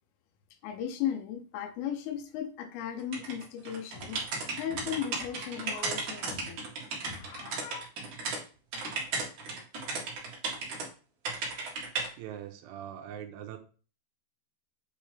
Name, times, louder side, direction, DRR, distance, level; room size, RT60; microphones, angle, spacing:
voice 1, 0.6-4.2 4.6-6.6 7.1-7.8, left 9 dB, 80° left, 6 dB, 3.6 m, -36 dB
sound 1, 3.1-8.4 8.7-10.9 11.2-12.1, right 3 dB, 50° right, 2.7 m, -35 dB
voice 2, 12.2-13.6, right 10 dB, 80° right, 5 dB, 3.1 m, -42 dB
8.8 x 5.1 x 3.4 m, 0.37 s
omnidirectional pair, 5.8 m